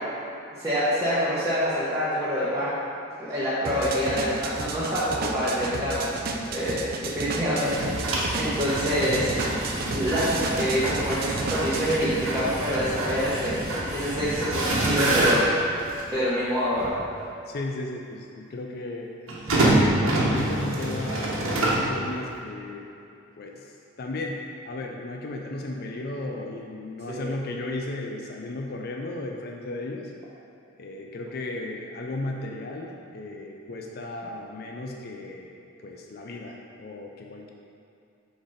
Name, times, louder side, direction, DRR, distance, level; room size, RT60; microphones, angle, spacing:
voice 1, 0.6-2.7 3.2-6.2 6.5-9.3 9.9-13.5 13.9-15.7 16.1-17.0 27.1-27.3, equal, 15° right, -14 dB, 1.1 m, -26 dB
sound 1, 3.6-12.0, right 3 dB, 45° right, 0.4 m, -33 dB
sound 2, 7.6-16.1 16.8-16.9 19.3-21.9, right 1 dB, 90° right, 1.2 m, -26 dB
voice 2, 14.7-15.1 17.5-19.1 19.6-22.9 23.4-30.1 30.8-35.5 35.8-37.5, left 2 dB, 50° left, 1 dB, 0.4 m, -35 dB
6.0 x 4.1 x 5.0 m, 2.6 s
head